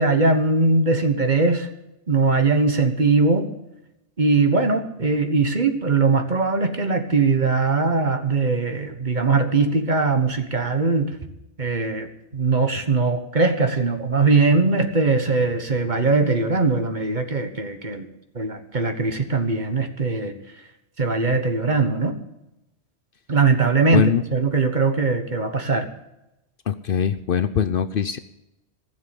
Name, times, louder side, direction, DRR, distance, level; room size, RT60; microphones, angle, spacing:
voice 1, 0.0-1.7 2.1-3.5 4.2-11.1 11.6-12.1 12.3-18.1 18.3-20.3 21.0-22.2 23.3-25.9, right 3 dB, 40° right, 7 dB, 1.5 m, -20 dB
voice 2, 23.9-24.2 26.7-28.2, left 8 dB, 55° left, 11 dB, 0.8 m, -22 dB
16.0 x 7.5 x 9.9 m, 0.91 s
omnidirectional pair, 1.2 m